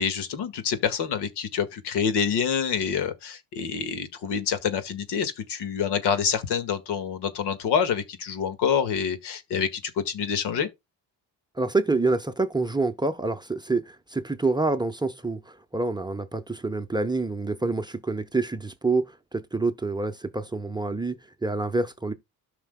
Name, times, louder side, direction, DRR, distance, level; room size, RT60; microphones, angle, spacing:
voice 1, 0.0-10.7, left 7 dB, 70° left, 1.8 m, -27 dB
voice 2, 11.6-22.1, right 3 dB, 10° right, 0.8 m, -27 dB
13.5 x 5.9 x 2.2 m
cardioid pair, 105°, 41 cm